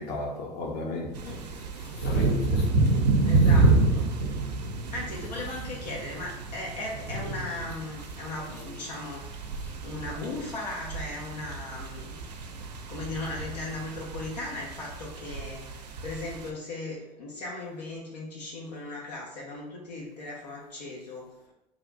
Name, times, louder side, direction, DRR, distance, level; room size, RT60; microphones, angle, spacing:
voice 1, 0.0-1.4 2.0-2.7 9.6-9.7, left 2 dB, 50° left, 0.8 m, -35 dB
sound 1, 1.1-16.5, right 3 dB, 80° right, 0.4 m, -28 dB
voice 2, 1.2-1.5 3.2-4.3 4.9-12.1 12.9-15.6 16.0-21.3, left 2 dB, 80° left, 0.7 m, -37 dB
2.9 x 2.4 x 3.9 m
figure-of-eight pair, 70°, 21 cm